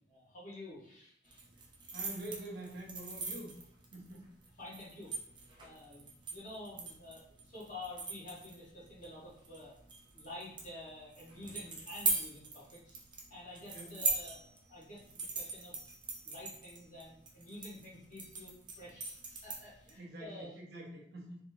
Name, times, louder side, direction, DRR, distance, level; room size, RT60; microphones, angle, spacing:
voice 1, 0.0-1.4 4.5-5.1 5.6-9.7 10.1-13.0 13.3-15.8 16.2-20.6, left 1 dB, 45° left, -6 dB, 1.7 m, -49 dB
sound 1, 1.3-19.9, right 4 dB, 25° right, 0.7 m, -41 dB
voice 2, 1.9-3.5 3.9-4.3 13.7-13.9 20.0-21.4, right 1 dB, 60° right, -2 dB, 1.0 m, -46 dB
4.2 x 3.4 x 2.9 m, 0.69 s
head